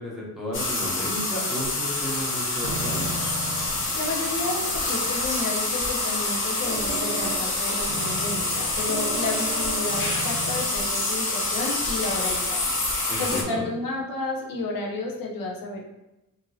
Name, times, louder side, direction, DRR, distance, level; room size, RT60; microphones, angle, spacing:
voice 1, 0.0-3.1 13.1-13.7, equal, ahead, -6 dB, 0.7 m, -33 dB
sound 1, 0.5-13.4, left 2 dB, 40° left, 0.5 m, -27 dB
sound 2, 2.6-10.6, right 4 dB, 70° right, 0.5 m, -36 dB
voice 2, 3.6-12.6 13.2-15.9, left 2 dB, 80° left, -1 dB, 0.7 m, -31 dB
2.8 x 2.7 x 2.6 m, 0.94 s
wide cardioid pair, 170°, 34 cm